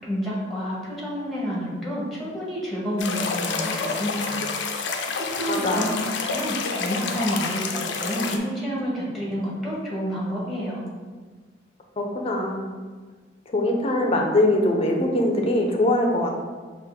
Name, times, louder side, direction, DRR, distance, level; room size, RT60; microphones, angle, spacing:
voice 1, 0.0-4.4 4.7-10.8, equal, ahead, -6 dB, 1.4 m, -29 dB
sound 1, 3.0-8.4, left 4 dB, 85° left, 0.5 m, -29 dB
voice 2, 5.5-5.9 12.0-12.7 13.5-16.3, left 1 dB, 35° left, 1 dB, 0.6 m, -22 dB
5.6 x 2.5 x 3.6 m, 1.4 s
head